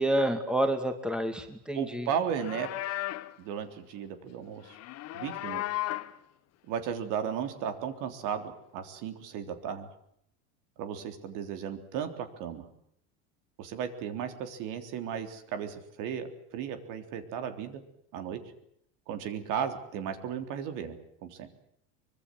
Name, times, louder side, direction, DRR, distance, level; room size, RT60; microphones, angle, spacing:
voice 1, 0.0-2.1, right 1 dB, ahead, 7 dB, 2.4 m, -28 dB
voice 2, 1.7-3.0 3.4-4.8 5.1-5.8 6.7-9.9 10.8-12.7 13.6-16.3 16.5-17.8 18.1-18.4 19.1-21.5, right 8 dB, 60° right, 7 dB, 3.6 m, -35 dB
Livestock farm animals working animals, 2.2-3.4 4.7-6.2, left 16 dB, 45° left, 1.2 m, -35 dB
24.5 x 22.0 x 7.9 m, 0.71 s
supercardioid pair, 130°, 36 cm